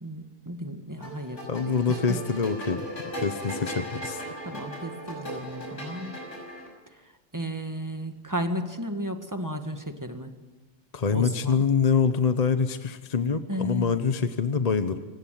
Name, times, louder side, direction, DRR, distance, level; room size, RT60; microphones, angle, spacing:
voice 1, 0.0-2.2 4.5-6.2 7.3-10.3 11.1-11.6 13.5-14.0, equal, 15° right, 6 dB, 1.9 m, -34 dB
sound 1, 1.0-6.7, equal, 75° left, 6.3 m, -37 dB
voice 2, 1.5-2.9 3.2-4.2 10.9-15.0, left 5 dB, 35° left, 10 dB, 1.0 m, -25 dB
26.5 x 15.5 x 9.3 m, 1.2 s
omnidirectional pair, 1.3 m